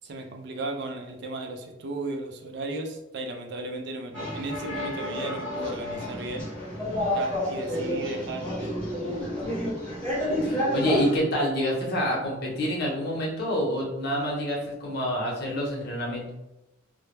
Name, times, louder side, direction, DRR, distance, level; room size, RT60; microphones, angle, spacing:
voice 1, 0.0-6.5 7.1-8.4, right 2 dB, 60° right, 4 dB, 0.4 m, -35 dB
sound 1, 4.1-11.2, equal, 10° left, 0.7 m, -30 dB
voice 2, 10.4-16.3, equal, 55° left, -2 dB, 0.7 m, -27 dB
2.2 x 2.0 x 3.0 m, 0.93 s
head